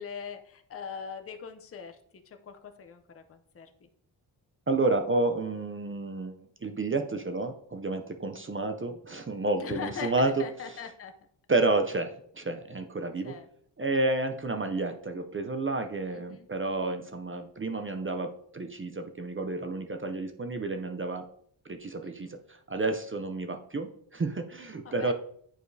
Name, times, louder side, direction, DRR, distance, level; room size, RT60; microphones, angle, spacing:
voice 1, 0.0-2.0 2.3-3.9 9.6-11.1 13.2-13.5 16.1-16.5 22.0-22.3 24.8-25.1, left 6 dB, 30° left, 6 dB, 0.5 m, -41 dB
voice 2, 4.7-10.4 11.5-13.4 13.8-21.3 21.7-25.1, right 2 dB, 30° right, 6 dB, 0.4 m, -30 dB
8.8 x 4.8 x 2.6 m, 0.63 s
wide cardioid pair, 155°, 48 cm